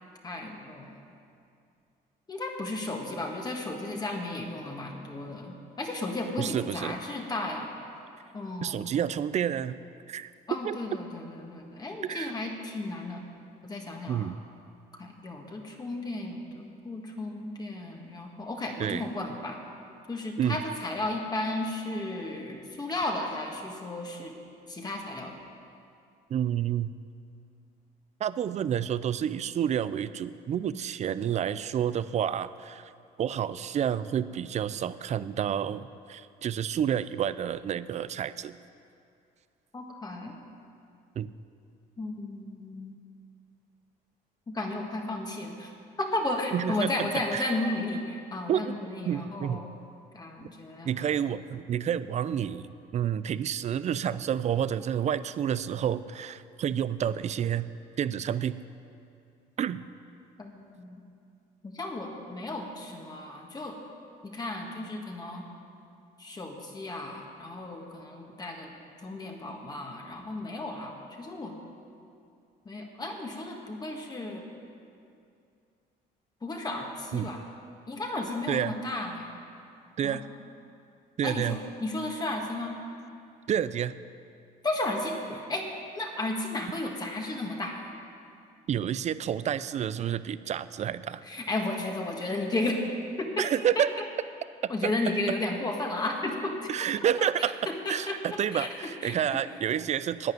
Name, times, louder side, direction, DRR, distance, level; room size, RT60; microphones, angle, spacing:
voice 1, 0.2-1.0 2.3-7.7 8.3-8.9 10.5-13.2 13.6-14.3 14.9-19.6 20.1-24.3 24.7-25.3 39.7-40.3 42.0-42.9 44.5-45.7 46.0-49.7 50.1-51.1 60.4-61.0 61.6-63.8 64.2-65.5 66.2-68.7 69.0-71.6 72.6-74.4 76.4-77.4 77.9-79.3 80.0-80.2 81.2-82.8 84.6-87.8 91.2-92.8 93.2-93.4 93.7-93.8 94.7-96.7 97.4-99.4, left 2 dB, 25° left, 1 dB, 1.7 m, -34 dB
voice 2, 6.4-7.0 8.6-9.7 10.1-10.3 10.6-10.8 12.0-12.3 14.1-14.4 18.8-19.0 20.4-20.6 26.3-26.9 28.2-32.9 33.2-38.6 41.2-41.3 46.5-47.5 48.5-48.8 49.1-49.6 50.4-50.5 50.8-57.7 58.0-58.6 59.6-59.8 77.1-77.3 78.5-78.7 80.0-80.2 81.2-81.6 83.5-83.9 88.7-91.2 93.4-93.9 94.6-94.9 96.7-97.6 97.9-100.3, right 9 dB, 45° right, 15 dB, 0.5 m, -29 dB
10.5 x 9.4 x 9.4 m, 2.5 s
cardioid pair, 110°, 17 cm